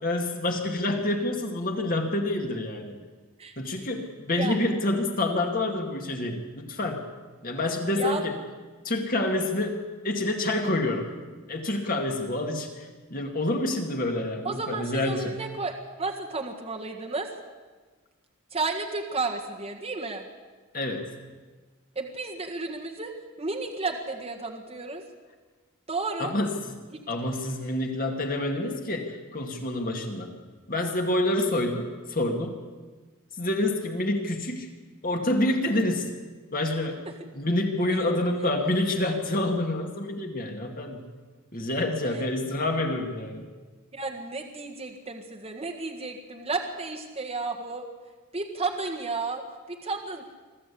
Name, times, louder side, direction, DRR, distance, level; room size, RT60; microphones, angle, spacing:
voice 1, 0.0-2.9 3.6-7.1 7.4-8.3 8.8-9.8 10.0-11.1 11.5-15.4 20.7-21.1 26.2-26.5 27.1-30.3 30.7-32.6 33.4-34.7 35.0-36.1 36.5-37.0 37.3-41.1 41.5-43.4, left 1 dB, 40° left, 3 dB, 2.3 m, -27 dB
voice 2, 14.4-17.3 18.5-20.2 21.9-23.1 23.4-25.0 25.9-26.3 26.9-27.0 42.1-42.2 43.9-47.8 48.3-50.3, right 3 dB, 30° right, 0 dB, 1.7 m, -32 dB
25.0 x 14.0 x 8.5 m, 1.4 s
head